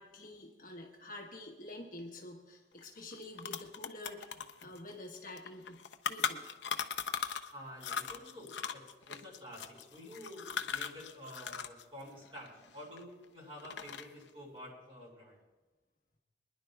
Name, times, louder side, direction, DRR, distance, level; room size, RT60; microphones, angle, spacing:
voice 1, 0.0-4.3 4.6-6.5, left 1 dB, 45° left, 0 dB, 1.3 m, -48 dB
sound 1, 2.8-2.9 3.1-7.5 7.8-11.8 12.1-13.2 13.6-14.2, left 7 dB, 75° left, 0.6 m, -38 dB
voice 2, 7.5-15.4, equal, 30° right, -4 dB, 5.1 m, -50 dB
26.5 x 10.5 x 2.3 m, 1.2 s
head